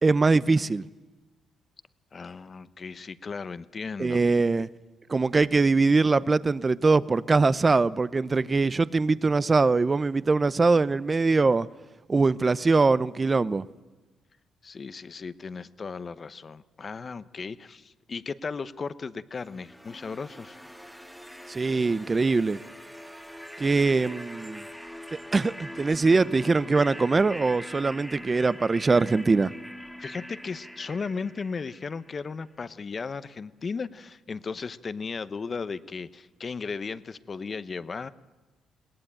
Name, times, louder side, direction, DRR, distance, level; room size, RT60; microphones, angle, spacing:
voice 1, 0.0-0.8 4.0-4.7 5.1-11.7 12.1-13.7 21.5-22.6 23.6-24.6 25.3-29.5, right 3 dB, 30° right, 0.6 m, -22 dB
voice 2, 2.1-4.2 14.6-20.6 30.0-38.1, left 5 dB, 40° left, 0.9 m, -36 dB
sound 1, 19.4-32.3, equal, ahead, 1.7 m, -43 dB
21.5 x 18.0 x 9.0 m
cardioid pair, 90°, 0 cm